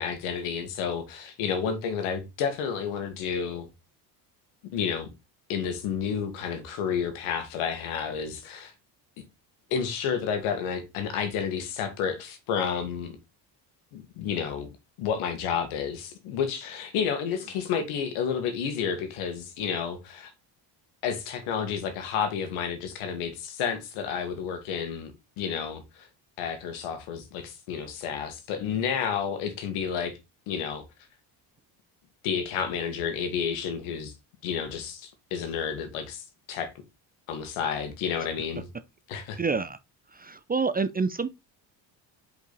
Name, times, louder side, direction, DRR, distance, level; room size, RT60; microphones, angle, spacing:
voice 1, 0.0-3.7 4.7-5.1 5.5-8.7 9.7-13.2 13.9-14.7 15.0-20.3 21.0-26.1 26.4-30.2 30.5-30.8 32.2-34.1 34.4-36.7 37.3-38.7 39.1-39.4, left 7 dB, 80° left, 1.9 m, -30 dB
voice 2, 39.4-39.8 40.1-41.3, right 4 dB, 20° right, 0.5 m, -27 dB
5.3 x 5.1 x 4.0 m
supercardioid pair, 80°, 50 cm